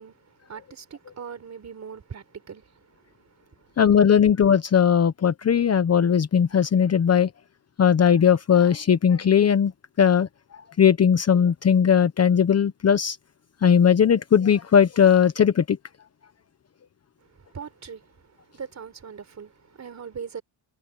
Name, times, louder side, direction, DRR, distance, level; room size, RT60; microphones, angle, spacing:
voice 1, 0.0-3.7 17.3-20.4, right 6 dB, 35° right, 4.2 m, -41 dB
voice 2, 3.8-7.3 7.8-9.7 10.0-10.3 10.8-13.2 13.6-15.8, left 8 dB, 30° left, 1.0 m, -18 dB
cardioid pair, 140°, 47 cm